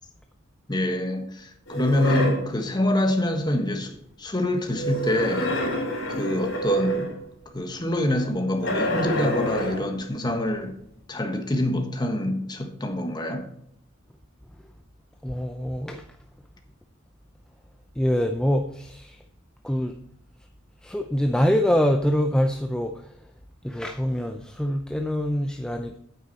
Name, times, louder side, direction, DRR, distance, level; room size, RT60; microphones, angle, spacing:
voice 1, 0.7-5.6 6.1-7.1 7.5-10.8 11.1-13.5, left 1 dB, 20° left, 1.3 m, -26 dB
sound 1, 1.7-2.5 4.7-7.2 8.6-10.0, right 1 dB, 75° left, 3.3 m, -27 dB
voice 2, 15.2-16.0 18.0-19.2 19.6-20.0 20.8-23.3 23.6-26.0, equal, 5° left, 0.5 m, -25 dB
9.1 x 8.5 x 4.1 m
head